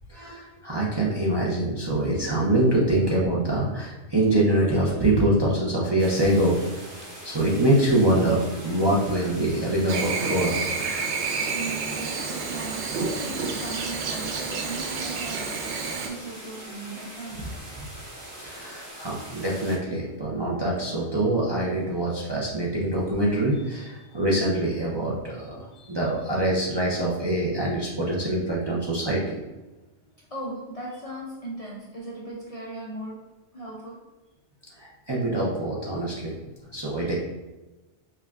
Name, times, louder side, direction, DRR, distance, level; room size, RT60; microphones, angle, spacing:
voice 1, 0.1-6.6 7.2-10.6 18.4-29.4 34.8-36.5 36.7-37.1, right 1 dB, 35° right, -5 dB, 0.5 m, -24 dB
sound 1, 6.0-19.8, right 1 dB, 15° right, 0.9 m, -42 dB
Chirp tweet / Buzz, 9.9-16.1, right 4 dB, 85° right, 0.9 m, -30 dB
voice 2, 11.5-17.4 30.3-33.2 33.5-34.0, right 2 dB, 50° left, -4 dB, 0.4 m, -37 dB
5.4 x 2.3 x 2.4 m, 1.1 s
omnidirectional pair, 1.2 m